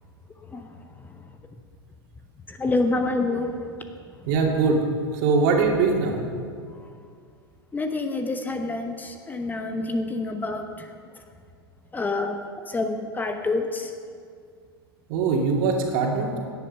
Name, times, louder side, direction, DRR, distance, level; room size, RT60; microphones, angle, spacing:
voice 1, 2.5-3.7 7.7-10.9 11.9-12.4 12.7-13.9, left 2 dB, 15° left, 5 dB, 1.1 m, -27 dB
voice 2, 4.3-4.8 5.2-6.2 15.1-16.4, right 4 dB, 50° right, 1 dB, 2.6 m, -22 dB
17.5 x 11.0 x 5.5 m, 2.2 s
figure-of-eight pair, 95°, 13 cm